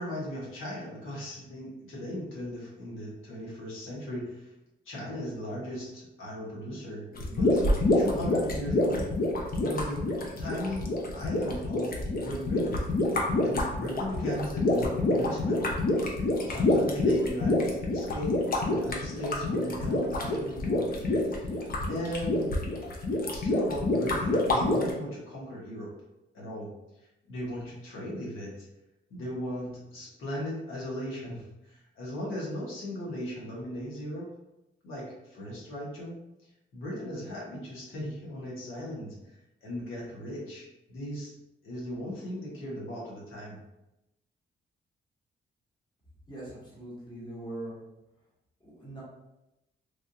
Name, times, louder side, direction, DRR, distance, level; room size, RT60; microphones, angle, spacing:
voice 1, 0.0-4.5 4.8-7.6 7.9-9.1 9.6-10.0 10.4-12.8 13.4-15.7 16.5-21.5 21.9-22.6 23.3-25.9 26.3-26.7 27.3-28.7 29.1-34.3 34.8-36.2 36.7-39.1 39.6-41.3 41.6-43.6, equal, 85° left, -5 dB, 1.3 m, -37 dB
sound 1, 7.1-24.9, left 2 dB, 45° left, 0.7 m, -27 dB
voice 2, 46.3-47.7 48.6-49.0, right 1 dB, 20° left, -7 dB, 1.3 m, -41 dB
3.4 x 2.5 x 2.7 m, 0.92 s
cardioid pair, 105°, 20 cm